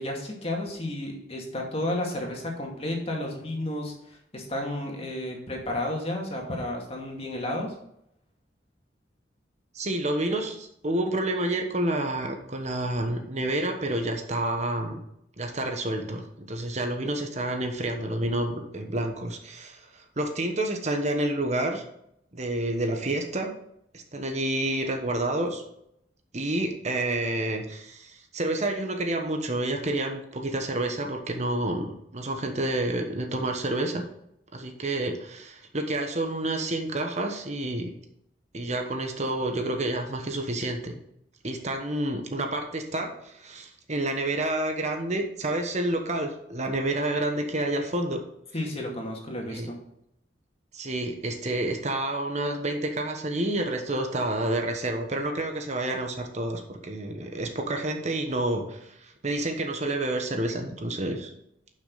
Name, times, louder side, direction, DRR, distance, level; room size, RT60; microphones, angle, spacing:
voice 1, 0.0-3.9 4.3-7.7 48.5-49.8, left 1 dB, 35° left, 0 dB, 2.4 m, -32 dB
voice 2, 9.7-15.0 15.4-21.8 22.3-23.5 23.9-25.6 26.3-34.0 34.5-37.9 38.5-40.9 41.4-48.2 49.5-49.7 50.7-61.3, right 1 dB, 40° right, 4 dB, 1.2 m, -29 dB
11.0 x 6.3 x 4.1 m, 0.77 s
head